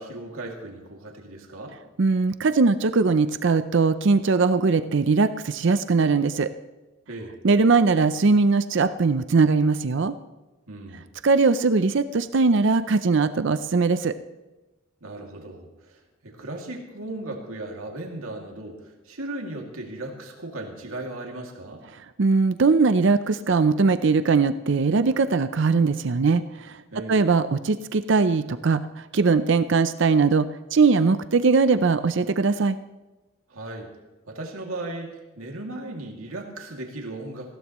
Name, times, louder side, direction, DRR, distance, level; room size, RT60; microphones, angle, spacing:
voice 1, 0.0-1.8 7.1-7.3 10.7-11.0 15.0-21.8 26.9-27.3 33.5-33.9 34.3-37.6, right 2 dB, 85° right, 1 dB, 2.4 m, -36 dB
voice 2, 2.0-6.5 7.4-10.1 11.2-14.1 22.2-26.7 27.1-28.8 29.1-32.8, right 4 dB, 60° right, 12 dB, 0.5 m, -20 dB
20.0 x 15.5 x 3.1 m, 1.1 s
head